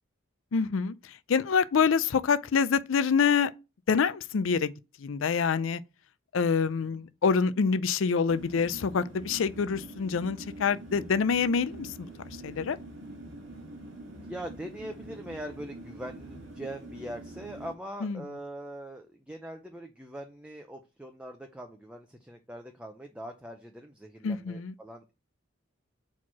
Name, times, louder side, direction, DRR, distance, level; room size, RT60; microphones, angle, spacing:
voice 1, 0.5-3.5 3.9-4.7 5.0-5.8 6.3-12.8 18.0-18.2 24.2-24.7, left 6 dB, 85° left, 0.5 m, -26 dB
sound 1, 8.3-17.7, right 1 dB, 75° right, 2.2 m, -45 dB
voice 2, 14.3-25.1, right 1 dB, 5° right, 0.5 m, -42 dB
4.6 x 4.3 x 5.9 m
head